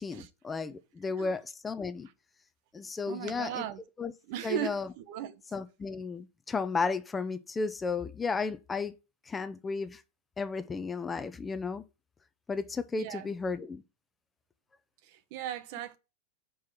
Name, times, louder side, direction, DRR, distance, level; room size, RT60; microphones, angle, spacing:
voice 1, 0.0-2.1 2.7-3.6 4.0-4.1 4.4-4.9 5.5-8.9 9.3-10.0 10.4-11.8 12.5-13.8, left 4 dB, 15° left, 0.6 m, -33 dB
voice 2, 3.1-3.8 4.3-5.4 13.0-13.3 15.0-16.0, right 11 dB, 55° right, 0.7 m, -37 dB
4.7 x 4.7 x 5.9 m
hypercardioid pair, 105°, 0 cm